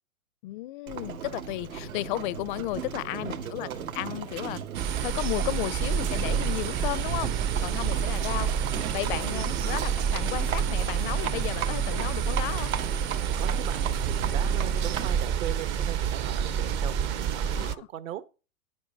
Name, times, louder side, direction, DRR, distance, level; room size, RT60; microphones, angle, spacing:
voice 1, 0.4-3.7 3.9-12.7 17.6-17.9, left 18 dB, 40° left, 0.4 m, -34 dB
Livestock farm animals working animals, 0.9-15.3, right 7 dB, 85° right, 2.1 m, -36 dB
voice 2, 3.1-3.8 9.2-9.5 13.4-17.0 17.3-18.3, right 11 dB, 65° right, 1.6 m, -39 dB
sound 1, 4.7-17.7, right 7 dB, 25° right, 0.5 m, -28 dB
9.9 x 8.1 x 5.2 m
hypercardioid pair, 135°, 41 cm